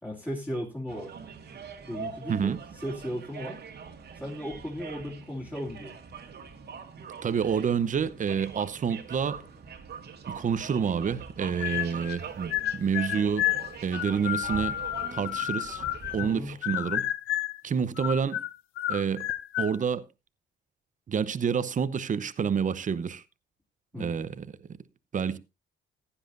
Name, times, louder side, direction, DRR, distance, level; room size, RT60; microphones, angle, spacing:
voice 1, 0.0-1.1 1.9-3.6 4.2-5.9 16.2-16.5 23.9-24.2, equal, 10° left, 2.8 m, -36 dB
sound 1, 0.9-16.6, right 6 dB, 55° right, 1.9 m, -43 dB
voice 2, 7.2-9.4 10.3-13.5 13.8-14.8 15.1-15.8 16.1-17.1 17.6-18.4 18.9-19.2 19.6-20.0 21.1-23.2 23.9-24.5 25.1-25.4, right 6 dB, 40° right, 0.8 m, -28 dB
sound 2, 11.6-12.2 12.5-16.3 16.6-17.6 18.0-19.8, left 13 dB, 85° left, 0.7 m, -31 dB
15.5 x 10.0 x 2.6 m
cardioid pair, 90°, 20 cm